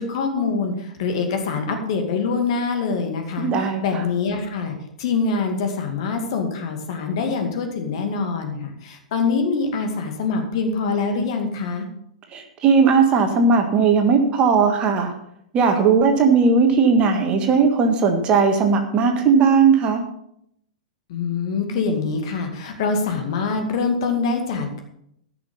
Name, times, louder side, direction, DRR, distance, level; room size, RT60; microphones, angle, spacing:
voice 1, 0.0-11.9 21.1-24.8, left 4 dB, 50° left, 4 dB, 2.2 m, -24 dB
voice 2, 3.4-4.0 12.3-15.1 15.5-20.0, right 5 dB, 25° right, 4 dB, 1.6 m, -17 dB
15.0 x 6.1 x 5.5 m, 0.73 s
figure-of-eight pair, 100°, 4 cm